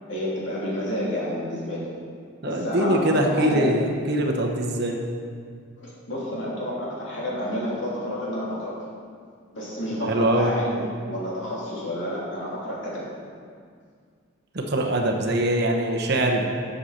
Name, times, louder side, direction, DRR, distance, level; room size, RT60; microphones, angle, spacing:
voice 1, 0.1-1.8 2.4-3.7 5.8-8.7 9.5-13.0, left 1 dB, 55° left, -6 dB, 3.0 m, -30 dB
voice 2, 2.4-5.0 10.0-10.5 14.5-16.5, right 1 dB, 50° right, 1 dB, 1.0 m, -23 dB
8.1 x 7.4 x 6.6 m, 2.1 s
head